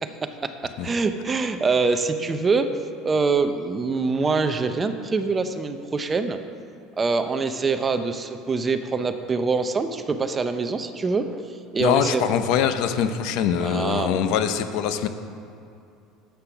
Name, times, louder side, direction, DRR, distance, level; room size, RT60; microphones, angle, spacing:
voice 1, 0.0-2.7 3.0-6.4 7.0-12.2 13.6-14.1, right 4 dB, 20° right, 8 dB, 0.6 m, -24 dB
voice 2, 11.8-15.1, left 8 dB, 65° left, 9 dB, 0.7 m, -23 dB
10.5 x 7.6 x 5.9 m, 2.6 s
cardioid pair, 130°, 0 cm